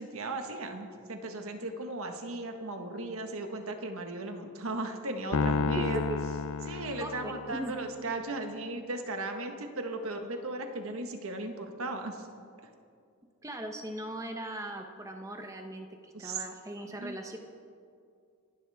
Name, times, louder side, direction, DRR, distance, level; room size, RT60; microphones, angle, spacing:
voice 1, 0.0-6.0 6.6-12.3 16.1-16.4 17.0-17.2, right 2 dB, 65° right, 4 dB, 1.6 m, -37 dB
Piano, 5.3-7.8, left 4 dB, 70° left, 0.6 m, -31 dB
voice 2, 5.8-6.2 6.6-7.7 13.4-17.4, right 1 dB, 15° right, 3 dB, 1.0 m, -39 dB
27.5 x 12.0 x 3.6 m, 2.3 s
head